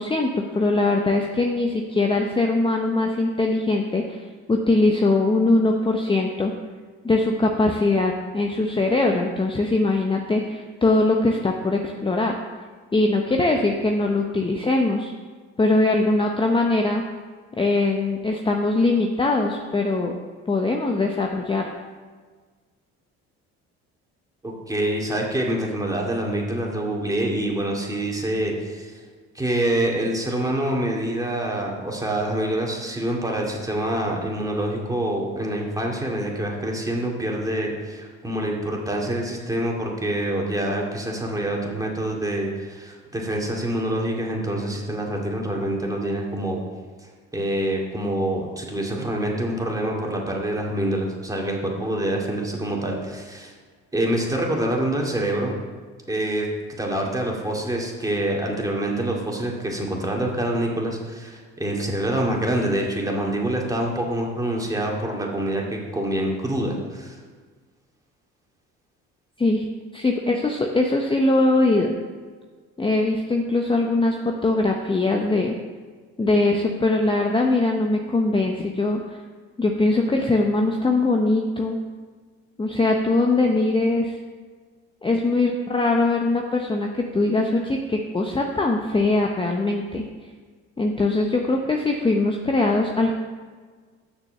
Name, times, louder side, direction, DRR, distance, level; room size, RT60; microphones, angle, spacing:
voice 1, 0.0-4.2 4.5-6.5 7.0-12.4 12.9-15.1 15.6-17.0 17.6-20.1 20.5-21.6 69.4-69.7 69.9-71.9 72.8-75.5 76.2-79.0 79.6-81.8 82.6-84.1 85.0-90.0 90.8-93.2, left 2 dB, 15° left, 2 dB, 0.8 m, -21 dB
voice 2, 24.4-28.9 29.3-46.6 47.3-53.5 53.9-55.5 56.1-56.5 56.8-67.2, right 1 dB, 10° right, -1 dB, 2.2 m, -26 dB
6.8 x 6.1 x 6.6 m, 1.5 s
supercardioid pair, 70°, 31 cm